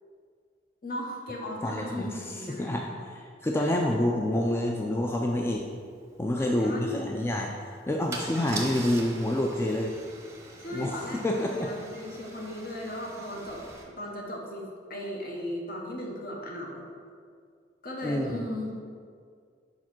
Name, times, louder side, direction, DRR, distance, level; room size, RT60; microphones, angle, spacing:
voice 1, 0.8-2.7 3.5-3.8 6.3-7.1 10.6-16.8 17.8-18.7, left 1 dB, 55° left, -1 dB, 1.0 m, -37 dB
voice 2, 1.6-2.1 2.5-5.6 6.2-7.5 7.9-9.9 10.7-11.7 18.0-18.4, left 1 dB, 15° left, 0 dB, 0.3 m, -28 dB
Car / Engine starting / Idling, 5.5-5.6 5.9-6.1 8.1-13.8, right 2 dB, 15° right, 0.7 m, -42 dB
4.8 x 4.3 x 5.9 m, 2.2 s
head